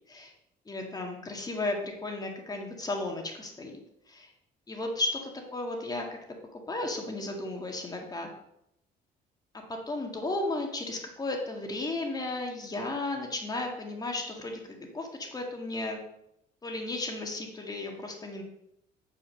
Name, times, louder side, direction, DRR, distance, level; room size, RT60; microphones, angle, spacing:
voice 1, 0.7-3.8 4.1-4.3 4.7-6.0 6.5-8.3 9.7-16.0 16.6-18.4, left 2 dB, 20° left, 2 dB, 1.9 m, -34 dB
8.3 x 5.1 x 6.2 m, 0.80 s
cardioid pair, 110°, 17 cm